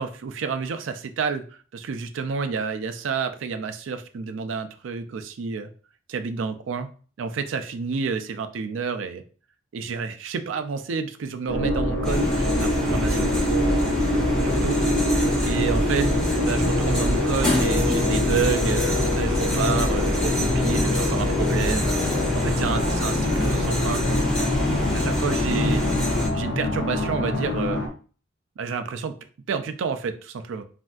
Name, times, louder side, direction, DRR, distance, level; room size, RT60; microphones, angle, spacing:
voice 1, 0.0-1.4 1.7-5.7 6.1-6.9 7.2-9.2 9.7-13.5 14.4-14.8 15.4-22.0 22.3-24.0 24.9-25.8 26.3-27.8 28.6-29.1 29.5-30.6, right 5 dB, 90° right, 8 dB, 0.4 m, -29 dB
sound 1, 11.5-27.9, left 1 dB, 60° left, 0.5 m, -25 dB
sound 2, 12.0-26.3, left 1 dB, 5° left, 1.5 m, -25 dB
3.3 x 2.6 x 2.3 m, 0.40 s
head